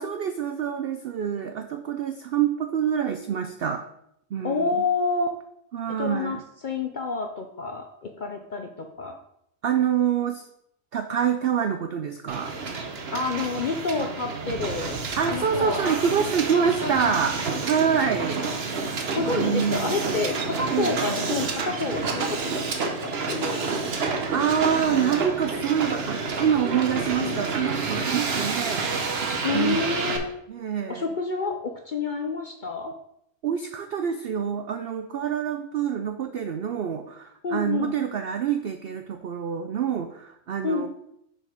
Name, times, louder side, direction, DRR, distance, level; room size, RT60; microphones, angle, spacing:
voice 1, 0.0-3.8 4.3-4.8 5.7-6.4 9.6-10.4 10.9-12.5 15.2-18.5 19.4-20.0 20.7-20.9 24.3-28.9 29.5-30.2 30.5-31.1 33.4-40.9, right 8 dB, 85° right, 8 dB, 0.5 m, -26 dB
voice 2, 4.4-5.3 6.0-6.4 6.6-9.2 13.1-15.0 15.3-16.0 16.5-17.3 19.1-23.7 24.8-25.2 27.2-27.4 29.4-30.3 30.9-33.0 37.4-38.0 40.6-40.9, left 4 dB, 65° left, 4 dB, 0.4 m, -29 dB
Hiss, 12.3-30.2, right 4 dB, 50° right, 1.0 m, -29 dB
6.5 x 5.2 x 5.2 m, 0.75 s
omnidirectional pair, 1.6 m